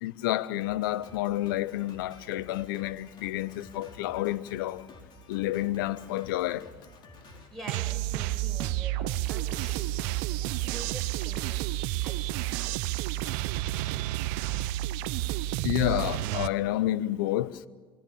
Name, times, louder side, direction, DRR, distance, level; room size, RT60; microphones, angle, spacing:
voice 1, 0.0-4.8 5.3-6.7 15.6-17.6, left 15 dB, 70° left, 0.8 m, -29 dB
Drum kit, 0.6-8.4, left 1 dB, 40° left, 4.3 m, -52 dB
voice 2, 7.5-12.6, right 1 dB, ahead, 5.7 m, -46 dB
sound 1, 7.7-16.5, right 15 dB, 60° right, 0.8 m, -30 dB
27.0 x 21.0 x 7.1 m
hypercardioid pair, 75°, 12 cm